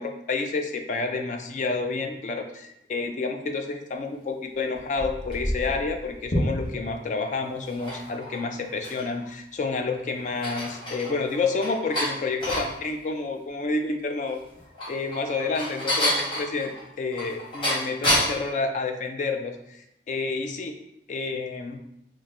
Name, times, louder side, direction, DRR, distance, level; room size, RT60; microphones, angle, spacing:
voice 1, 0.0-14.4 14.9-20.8 21.1-21.8, left 3 dB, 45° left, 5 dB, 0.3 m, -29 dB
sound 1, 4.7-6.9 7.6-9.3 9.7-9.8 10.2-12.7 14.5-18.5, equal, 30° left, 1.0 m, -29 dB
5.8 x 2.1 x 2.6 m, 0.81 s
head